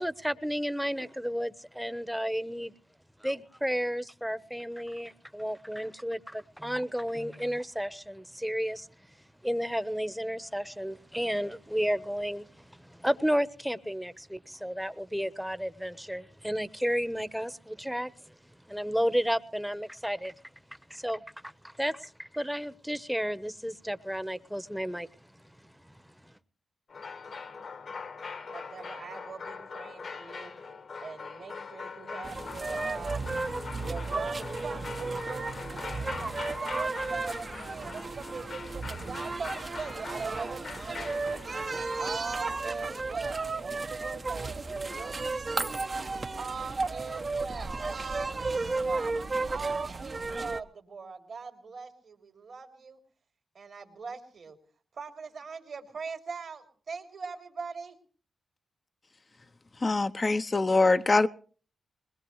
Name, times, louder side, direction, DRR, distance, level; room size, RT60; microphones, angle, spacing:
voice 1, 0.0-2.7 3.2-8.9 9.4-18.3 18.7-20.3 20.9-25.1 25.6-25.9 26.2-26.3, equal, 5° right, 1.1 m, -32 dB
sound 1, 26.9-43.5 44.8-45.1, left 5 dB, 65° left, 1.4 m, -42 dB
voice 2, 28.5-30.5 31.0-33.3 33.8-41.5 42.0-45.9 46.4-49.1 49.5-53.0 53.5-54.6 54.9-58.0, right 5 dB, 65° right, 3.1 m, -41 dB
sound 2, 32.2-50.6, right 3 dB, 45° right, 1.0 m, -34 dB
voice 3, 59.8-61.3, left 3 dB, 40° left, 0.7 m, -23 dB
21.0 x 20.5 x 3.2 m
supercardioid pair, 40°, 0 cm